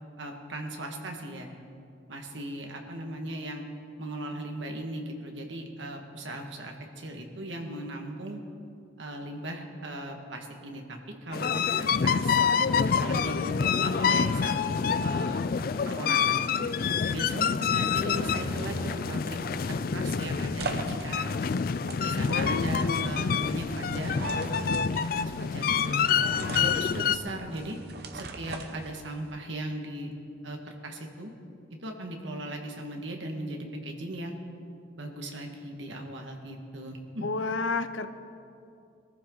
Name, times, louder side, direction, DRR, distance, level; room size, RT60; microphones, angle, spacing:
voice 1, 0.2-1.5 2.1-3.6 4.0-8.4 9.0-12.4 12.8-16.7 17.1-19.4 19.7-21.4 22.0-24.3 24.5-26.0 26.5-27.8 28.1-30.1 30.4-31.3 31.8-34.4 35.0-37.3, right 1 dB, 75° right, 2 dB, 1.9 m, -38 dB
sound 1, 11.3-27.2, left 6 dB, 45° left, 0.3 m, -27 dB
sound 2, 18.1-27.6, equal, 30° right, 1.8 m, -43 dB
sound 3, 19.8-29.3, right 3 dB, 55° right, 0.9 m, -41 dB
voice 2, 22.3-23.2 37.2-38.1, left 3 dB, 85° left, 11 dB, 0.8 m, -31 dB
22.0 x 14.5 x 4.0 m, 2.5 s
head